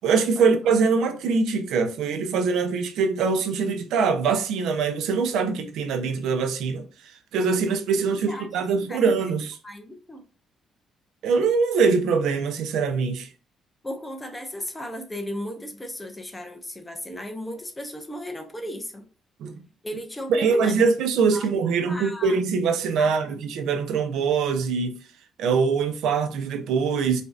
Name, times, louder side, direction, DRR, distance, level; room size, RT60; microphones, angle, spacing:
voice 1, 0.0-9.6 11.2-13.3 19.4-19.5 20.3-25.0 25.4-27.2, right 5 dB, 70° right, 0.5 m, -23 dB
voice 2, 9.6-10.2 13.8-19.1 19.8-20.7 21.3-21.5 21.9-22.4 23.0-23.4, left 1 dB, 10° left, 0.5 m, -35 dB
4.9 x 2.6 x 2.4 m
cardioid pair, 180°, 0 cm